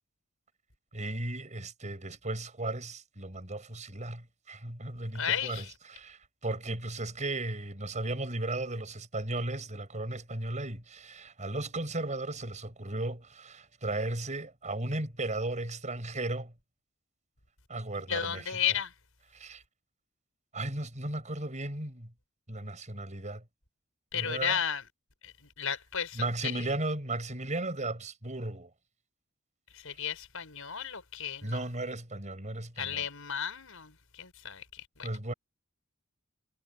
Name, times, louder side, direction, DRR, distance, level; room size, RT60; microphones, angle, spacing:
voice 1, 0.9-16.5 17.7-18.6 19.3-19.6 20.5-22.1 22.5-23.4 24.1-24.6 26.1-28.7 31.4-33.1 35.0-35.3, right 2 dB, 35° right, 5.8 m, -35 dB
voice 2, 5.1-5.7 18.1-18.9 24.1-24.8 25.2-26.2 26.5-26.6 29.8-31.6 32.8-35.1, left 8 dB, 70° left, 6.5 m, -34 dB
head